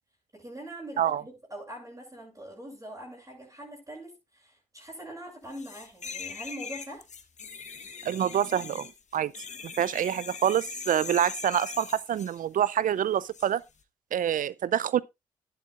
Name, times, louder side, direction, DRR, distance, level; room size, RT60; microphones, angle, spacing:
voice 1, 0.3-7.0, right 1 dB, 20° right, 7.1 m, -43 dB
sound 1, 5.5-12.4 13.3-13.5, left 6 dB, 50° left, 1.2 m, -41 dB
voice 2, 8.0-9.3 9.6-13.6 14.1-15.0, right 10 dB, 60° right, 0.5 m, -26 dB
12.5 x 10.5 x 2.4 m
hypercardioid pair, 40°, 16 cm